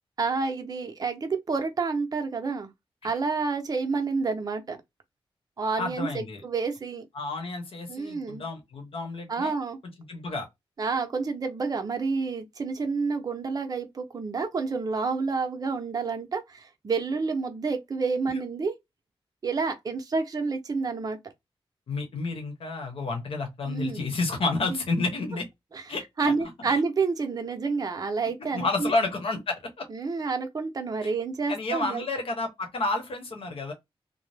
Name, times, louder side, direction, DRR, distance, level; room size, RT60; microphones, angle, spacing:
voice 1, 0.2-2.7 3.0-4.8 5.6-6.1 6.4-7.1 7.9-8.4 9.3-9.8 10.8-18.8 19.4-21.2 23.6-24.0 24.7-24.8 25.7-25.8 26.2-28.9 29.9-32.1, right 4 dB, 40° right, 0.6 m, -29 dB
voice 2, 5.8-6.4 7.1-9.5 10.1-10.5 18.3-18.4 21.9-25.5 25.9-26.3 26.6-26.8 28.5-29.9 31.0-31.1 31.5-33.7, left 3 dB, 70° left, 0.9 m, -30 dB
2.7 x 2.0 x 3.2 m
wide cardioid pair, 125°, 10 cm